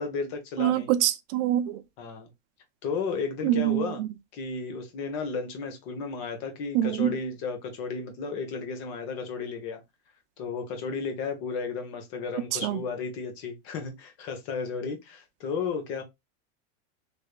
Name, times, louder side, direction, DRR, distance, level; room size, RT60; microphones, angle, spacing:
voice 1, 0.0-0.9 2.0-2.3 2.8-4.0 4.3-9.8 10.4-16.0, left 5 dB, 55° left, 1.3 m, -33 dB
voice 2, 0.6-1.8 3.4-4.1 6.7-7.1 12.5-12.8, right 13 dB, 65° right, 0.6 m, -25 dB
3.4 x 3.0 x 2.4 m
supercardioid pair, 150°, 38 cm